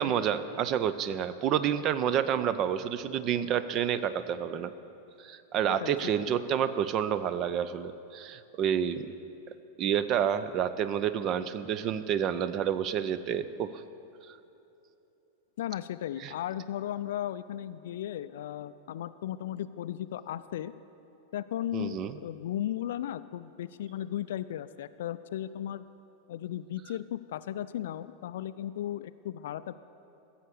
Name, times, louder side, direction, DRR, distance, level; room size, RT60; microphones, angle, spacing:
voice 1, 0.0-4.7 5.2-9.1 9.8-13.8 16.2-16.3 21.7-22.2, right 9 dB, 35° right, 14 dB, 0.5 m, -29 dB
voice 2, 5.7-6.3 15.6-20.7 21.3-25.8 26.3-29.8, left 11 dB, 55° left, 14 dB, 0.3 m, -36 dB
15.5 x 7.2 x 6.7 m, 2.9 s
figure-of-eight pair, 90°, 0 cm